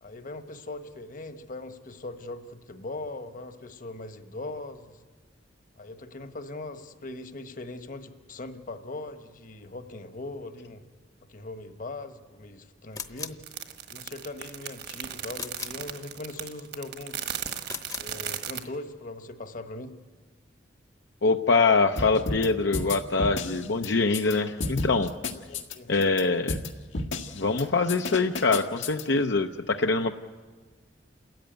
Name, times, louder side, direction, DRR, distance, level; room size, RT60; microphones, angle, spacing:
voice 1, 0.0-5.0 5.8-10.8 11.3-13.4 13.9-17.3 18.0-20.0 24.5-24.8 25.5-25.9, left 2 dB, 45° left, 9 dB, 1.3 m, -40 dB
sound 1, 12.9-13.5 15.3-15.9 17.6-18.2, left 5 dB, 20° left, 0.9 m, -38 dB
sound 2, 13.4-18.6, right 9 dB, 60° right, 1.5 m, -36 dB
voice 2, 21.2-25.1 25.9-26.6 27.3-30.1, left 3 dB, 65° left, 5 dB, 0.7 m, -24 dB
sound 3, 22.0-22.5 22.7-24.4 24.6-26.2 26.5-26.7 26.9-27.6 27.9-29.0, left 3 dB, 85° left, 1.8 m, -31 dB
29.0 x 14.0 x 9.2 m, 1.4 s
head